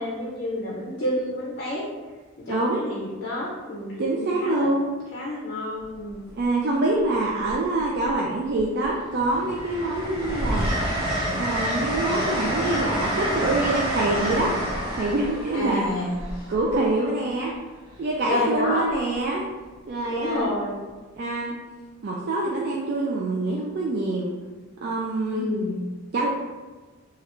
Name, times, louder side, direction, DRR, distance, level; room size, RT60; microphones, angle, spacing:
voice 1, 0.0-1.9 2.4-4.7 5.1-6.2 15.5-16.2 18.3-18.9 20.1-20.8 25.3-25.8, left 1 dB, 50° left, -4 dB, 0.5 m, -29 dB
voice 2, 2.4-2.8 4.0-4.8 6.3-10.7 11.3-14.5 14.9-15.8 16.5-17.5 18.0-19.4 19.9-20.5 21.2-21.5 22.0-24.3 24.8-25.5 26.1-26.3, right 2 dB, 50° right, -3 dB, 0.3 m, -25 dB
Train, 5.8-6.1 7.4-8.1 8.6-17.3 18.9-19.2, equal, 25° right, 0.9 m, -28 dB
3.1 x 2.4 x 3.0 m, 1.3 s
head